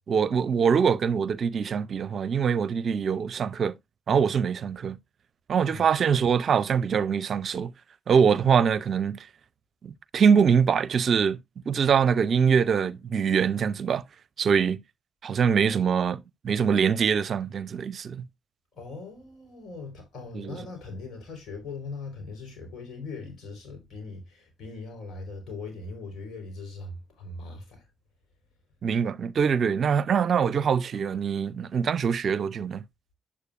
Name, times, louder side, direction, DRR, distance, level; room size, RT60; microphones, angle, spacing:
voice 1, 0.1-3.7 4.1-5.0 5.5-7.7 8.1-9.3 9.8-11.4 11.7-14.0 14.4-14.8 15.2-18.3 20.3-20.6 28.8-32.8, right 6 dB, 60° right, 0.5 m, -23 dB
voice 2, 18.7-27.8, left 3 dB, 65° left, 4.4 m, -40 dB
8.6 x 8.1 x 2.5 m
hypercardioid pair, 45°, 0 cm